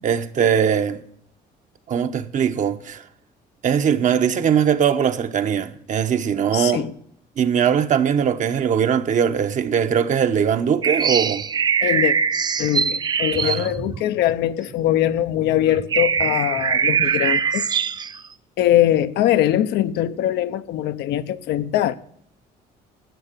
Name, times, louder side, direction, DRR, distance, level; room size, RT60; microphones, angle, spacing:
voice 1, 0.0-1.0 1.9-3.0 3.6-6.9 7.4-11.5 13.4-13.7, right 8 dB, 50° right, 1.0 m, -20 dB
voice 2, 6.5-6.9 11.8-12.2 12.6-17.7 18.6-22.0, left 12 dB, 75° left, 0.7 m, -21 dB
sound 1, 10.8-14.7 15.3-15.4 15.7-18.2, right 6 dB, 25° right, 0.4 m, -22 dB
12.5 x 8.1 x 6.7 m
cardioid pair, 110°, 17 cm